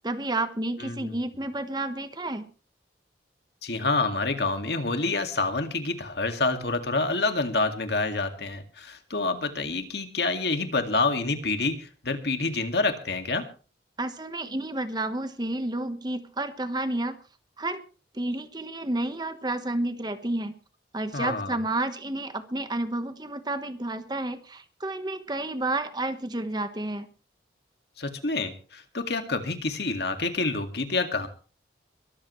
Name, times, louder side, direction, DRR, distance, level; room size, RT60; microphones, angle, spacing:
voice 1, 0.0-2.5 14.0-17.1 17.6-17.8 18.1-20.5 20.9-27.1, right 2 dB, 20° right, 10 dB, 1.2 m, -30 dB
voice 2, 0.8-1.2 3.6-13.5 21.1-21.6 28.0-31.3, left 3 dB, 60° left, 7 dB, 2.2 m, -27 dB
23.0 x 14.0 x 3.2 m, 0.36 s
head